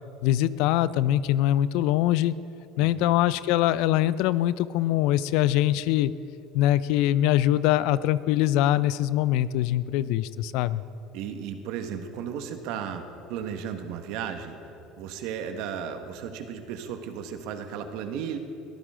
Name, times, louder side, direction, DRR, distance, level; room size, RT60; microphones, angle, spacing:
voice 1, 0.2-2.3 2.8-6.1 6.5-10.8, left 13 dB, 70° left, 17 dB, 0.5 m, -23 dB
voice 2, 2.8-3.1 11.1-14.6 15.0-18.4, right 8 dB, 70° right, 6 dB, 1.5 m, -35 dB
22.0 x 14.5 x 3.8 m, 2.9 s
hypercardioid pair, 80°, 0 cm